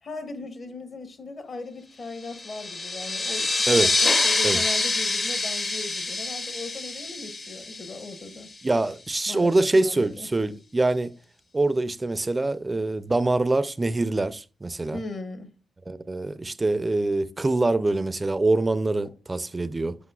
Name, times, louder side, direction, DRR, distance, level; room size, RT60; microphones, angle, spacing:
voice 1, 0.0-8.5 9.3-10.3 14.9-15.5 19.0-19.1, left 3 dB, 50° left, 1.1 m, -38 dB
sound 1, 2.2-8.5, left 3 dB, 35° left, 0.7 m, -26 dB
voice 2, 8.6-11.1 11.5-15.0 15.9-20.0, right 2 dB, 20° right, 0.4 m, -24 dB
8.1 x 5.2 x 2.3 m
cardioid pair, 100°, 0 cm